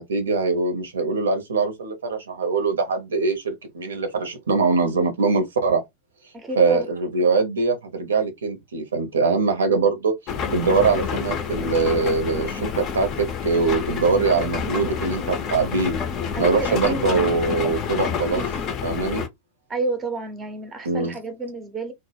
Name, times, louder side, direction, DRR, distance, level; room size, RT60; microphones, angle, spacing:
voice 1, 0.0-5.8 6.6-10.1 10.5-16.0 16.4-18.4 18.8-19.2 20.8-21.1, right 4 dB, 70° right, 0.6 m, -22 dB
voice 2, 6.3-6.9 16.3-17.0 19.7-21.9, right 2 dB, 20° right, 0.5 m, -30 dB
sound 1, 10.3-19.3, left 6 dB, 35° left, 0.5 m, -28 dB
2.1 x 2.0 x 3.2 m
figure-of-eight pair, 90°, 0 cm